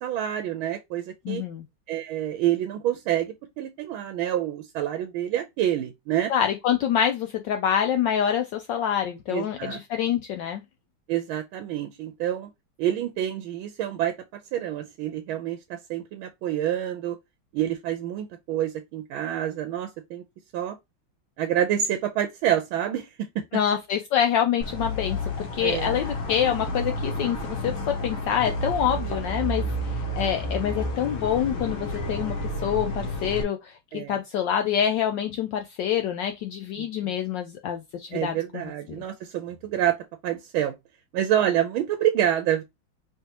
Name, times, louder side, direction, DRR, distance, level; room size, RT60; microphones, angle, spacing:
voice 1, 0.0-1.4 1.9-6.3 9.3-9.8 11.1-12.5 12.8-14.1 14.5-17.2 17.5-20.2 20.5-20.7 21.4-23.4 25.6-26.0 33.9-34.2 36.8-37.1 38.1-40.0 40.2-40.7 41.1-42.6, right 11 dB, 85° right, 1.4 m, -27 dB
voice 2, 1.3-1.6 6.3-10.6 23.5-25.2 25.5-29.7 30.2-38.6, left 9 dB, 75° left, 1.1 m, -26 dB
sound 1, 24.6-33.4, left 1 dB, 90° left, 1.9 m, -30 dB
4.6 x 3.4 x 2.8 m
omnidirectional pair, 2.3 m